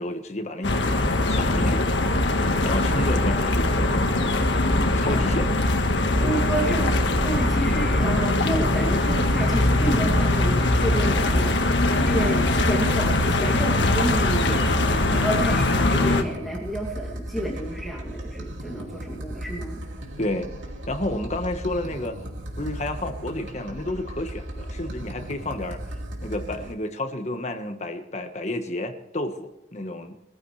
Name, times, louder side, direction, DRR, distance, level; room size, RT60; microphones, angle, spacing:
voice 1, 0.0-1.8 2.6-4.0 5.0-5.5 20.2-20.5 20.9-22.2 22.6-25.8 26.2-30.2, left 1 dB, 35° left, 6 dB, 1.4 m, -31 dB
sound 1, 0.6-16.2, left 2 dB, 75° left, 1.6 m, -21 dB
voice 2, 5.1-5.4 6.2-19.8, right 1 dB, ahead, -4 dB, 2.5 m, -30 dB
sound 2, 8.2-26.7, right 1 dB, 85° right, 2.7 m, -36 dB
22.5 x 14.0 x 3.3 m, 0.88 s
head